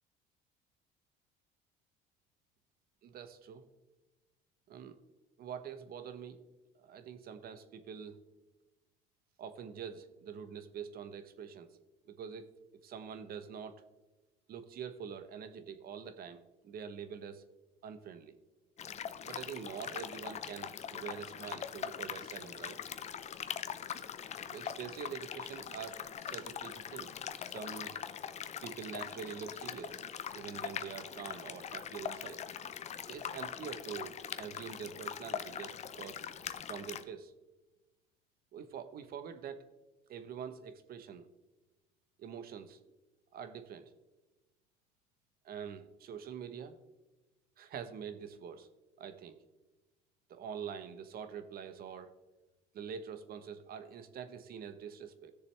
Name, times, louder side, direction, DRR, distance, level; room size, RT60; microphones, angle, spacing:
voice 1, 3.0-3.6 4.7-5.0 5.4-6.4 6.8-8.2 9.4-11.8 12.0-12.5 12.8-13.8 14.5-17.4 17.8-18.3 19.2-22.8 24.5-27.1 27.4-28.0 28.6-30.0 30.3-32.5 33.1-36.2 36.7-37.3 38.5-39.7 40.1-41.3 42.2-42.8 43.3-43.9 45.4-46.8 47.6-48.7 49.0-49.4 50.3-52.1 52.7-55.3, right 7 dB, 50° right, 11 dB, 1.0 m, -45 dB
sound 1, 18.8-37.0, left 8 dB, 35° left, 0.6 m, -42 dB
17.0 x 6.7 x 3.3 m, 1.1 s
cardioid pair, 105°, 19 cm